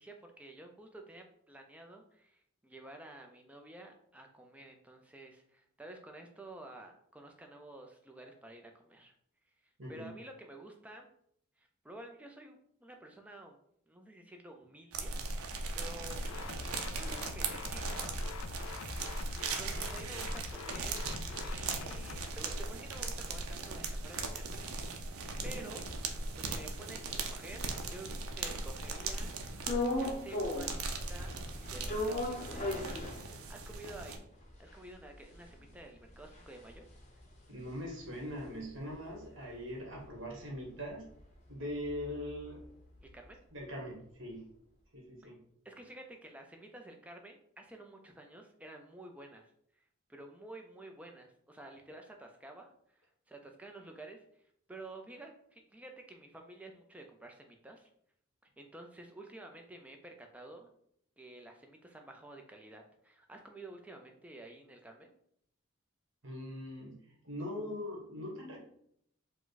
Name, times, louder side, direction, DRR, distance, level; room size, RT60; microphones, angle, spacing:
voice 1, 0.0-9.1 9.9-11.1 11.6-13.6 13.9-16.2 16.9-18.2 19.4-21.0 21.3-25.1 25.4-25.9 26.3-28.1 28.3-31.4 31.7-33.0 33.5-34.3 34.6-36.8 43.0-43.4 45.6-49.8 50.1-54.4 54.7-57.9 58.6-60.7 61.2-65.1, right 1 dB, 5° right, 3 dB, 0.4 m, -51 dB
voice 2, 9.8-10.1 25.4-25.6 37.5-41.1 41.5-42.6 43.5-44.5 44.9-45.4 66.2-67.0 67.2-68.6, equal, 65° right, -1 dB, 1.4 m, -41 dB
sound 1, 14.9-34.2, right 3 dB, 85° right, 0.6 m, -39 dB
sound 2, 16.1-22.3, left 5 dB, 75° left, 0.3 m, -45 dB
sound 3, 29.6-30.8 31.1-33.7 34.1-34.2 34.4-38.9 39.2-43.3, left 1 dB, 30° left, 0.7 m, -39 dB
4.8 x 2.2 x 3.9 m, 0.68 s
head